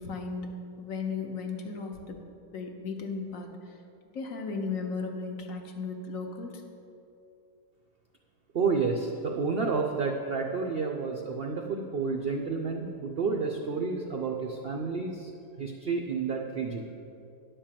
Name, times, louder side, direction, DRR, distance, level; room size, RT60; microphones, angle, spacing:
voice 1, 0.0-2.2 2.5-3.7 4.1-6.6, left 4 dB, 60° left, 3 dB, 1.2 m, -36 dB
voice 2, 8.5-15.3 15.6-16.9, right 4 dB, 65° right, 2 dB, 0.5 m, -30 dB
10.0 x 4.5 x 7.4 m, 2.6 s
omnidirectional pair, 1.7 m